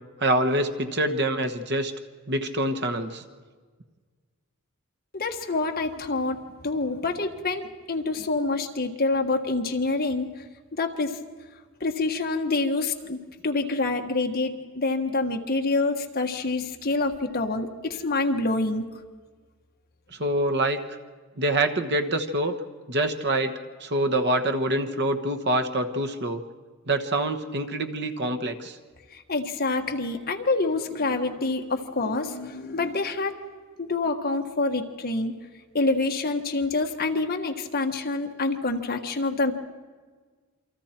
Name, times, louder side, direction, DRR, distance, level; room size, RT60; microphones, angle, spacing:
voice 1, 0.2-1.9 2.3-3.2 20.1-20.8 21.4-22.6 22.9-26.4 26.9-28.8, right 1 dB, 50° right, 8 dB, 1.3 m, -25 dB
voice 2, 5.1-10.3 10.7-11.1 11.8-13.2 13.4-18.8 29.1-33.3 33.8-35.3 35.7-39.5, left 3 dB, 45° left, 4 dB, 1.5 m, -27 dB
28.0 x 24.5 x 4.5 m, 1.5 s
head